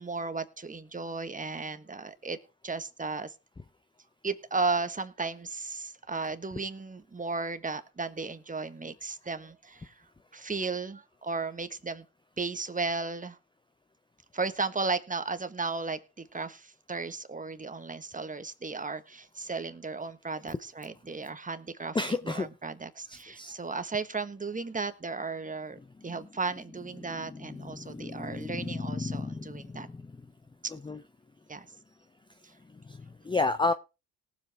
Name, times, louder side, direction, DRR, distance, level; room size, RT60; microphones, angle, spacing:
voice 1, 0.0-2.4 2.6-3.3 4.2-10.0 10.3-12.0 12.4-13.4 14.3-29.9 30.6-30.7 31.5-31.7 32.4-32.5, right 4 dB, 20° right, 10 dB, 1.5 m, -35 dB
voice 2, 21.9-22.5 23.4-23.5 27.2-30.0 30.8-31.0 32.9-33.0 33.2-33.7, left 3 dB, 10° left, 11 dB, 0.6 m, -31 dB
18.5 x 7.6 x 3.5 m, 0.29 s
supercardioid pair, 75°, 41 cm